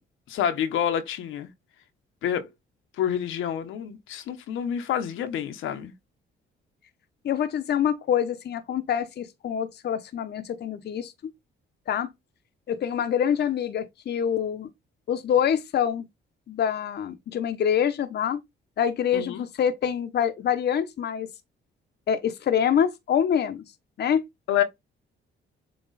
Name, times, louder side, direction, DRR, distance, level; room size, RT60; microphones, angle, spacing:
voice 1, 0.3-1.5 2.2-2.5 3.0-5.9 19.1-19.4 24.5-24.6, left 9 dB, 80° left, 1.1 m, -28 dB
voice 2, 7.2-11.1 11.9-12.1 12.7-14.7 15.1-16.0 16.5-18.4 18.8-21.3 22.1-23.6 24.0-24.2, left 8 dB, 55° left, 0.9 m, -25 dB
7.7 x 3.0 x 4.1 m
cardioid pair, 90°, 20 cm